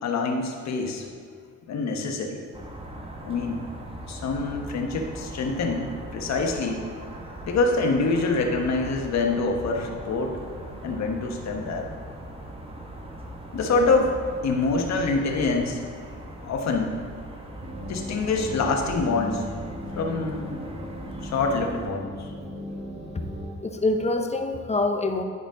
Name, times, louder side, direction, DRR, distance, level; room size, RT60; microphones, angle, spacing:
voice 1, 0.0-1.1 1.7-2.4 3.2-3.6 4.1-6.8 7.4-10.4 10.8-11.8 13.5-15.8 16.4-17.0 17.9-19.4 19.9-20.5 21.2-22.3, left 3 dB, 60° left, 2 dB, 1.2 m, -25 dB
sound 1, 2.5-21.9, right 1 dB, 20° right, 1.0 m, -40 dB
sound 2, 17.6-23.5, equal, 35° right, 1.5 m, -37 dB
voice 2, 23.6-25.2, left 2 dB, 20° left, 5 dB, 0.7 m, -25 dB
10.5 x 5.0 x 3.8 m, 2.1 s
cardioid pair, 90°, 30 cm